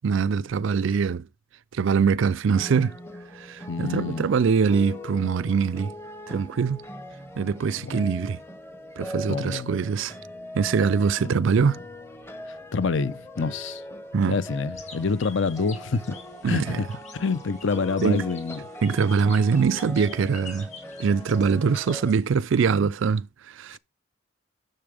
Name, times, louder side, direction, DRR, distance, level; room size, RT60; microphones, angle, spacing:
voice 1, 0.0-1.3 1.7-3.0 3.4-5.9 6.3-6.8 7.4-8.4 9.0-10.1 10.5-11.8 14.1-14.4 16.4-16.8 18.0-18.2 18.8-20.7 21.0-23.8, right 5 dB, 60° right, 0.4 m, -23 dB
sound 1, 2.5-22.1, left 1 dB, 10° left, 0.9 m, -40 dB
voice 2, 3.7-4.3 7.8-8.1 9.3-9.7 11.2-11.3 12.5-13.8 14.1-16.1 16.4-18.7, left 4 dB, 60° left, 0.6 m, -27 dB
sound 2, 14.7-22.5, left 5 dB, 35° left, 2.2 m, -47 dB
6.9 x 6.8 x 4.9 m
head